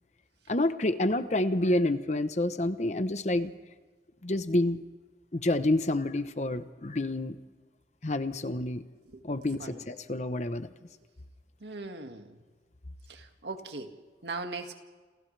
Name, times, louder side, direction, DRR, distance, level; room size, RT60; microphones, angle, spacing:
voice 1, 0.5-3.5 4.2-4.8 5.3-7.4 8.0-8.8 9.2-10.7, left 1 dB, 40° left, 11 dB, 0.9 m, -28 dB
voice 2, 9.5-9.8 11.6-12.3 13.1-13.9 14.2-14.8, right 3 dB, 75° right, 5 dB, 2.0 m, -39 dB
29.0 x 28.5 x 3.4 m, 1.3 s
head